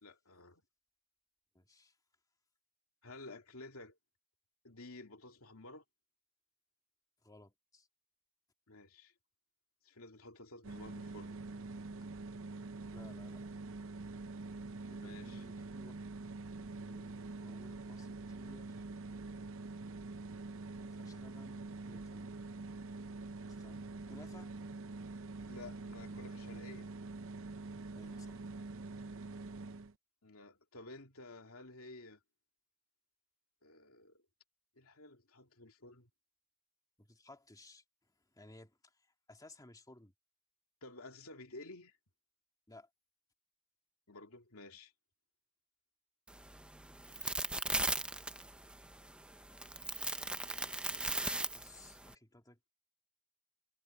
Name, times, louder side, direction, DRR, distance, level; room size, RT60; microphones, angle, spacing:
voice 1, 0.0-0.6 3.0-4.0 4.6-5.8 8.7-9.1 9.8-11.7 15.0-15.4 25.5-26.9 30.2-32.2 33.6-34.2 34.8-36.1 40.8-42.0 44.1-44.9, left 2 dB, 80° left, 2.7 m, -52 dB
voice 2, 1.5-1.9 7.2-7.9 12.9-13.5 14.9-15.9 16.8-18.8 20.8-22.3 23.5-24.5 27.9-28.4 37.0-37.8 38.3-40.1 42.7-42.9 51.5-52.7, left 2 dB, 15° left, 2.5 m, -58 dB
sound 1, 10.6-29.9, right 3 dB, 65° right, 0.7 m, -45 dB
sound 2, 46.3-52.1, right 2 dB, 5° right, 0.6 m, -38 dB
head